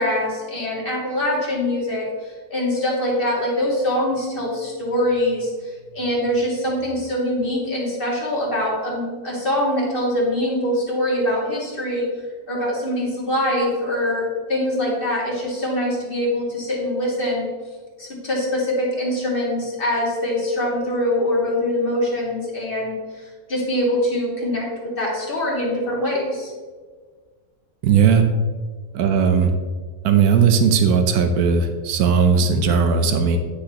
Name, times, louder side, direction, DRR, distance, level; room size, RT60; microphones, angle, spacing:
voice 1, 0.0-2.1 2.5-12.1 12.5-17.5 18.0-26.5, left 1 dB, 35° left, -3 dB, 2.2 m, -23 dB
voice 2, 27.8-28.3 28.9-29.5 30.0-33.4, right 6 dB, 80° right, 6 dB, 1.2 m, -17 dB
9.6 x 6.6 x 2.9 m, 1.5 s
omnidirectional pair, 1.6 m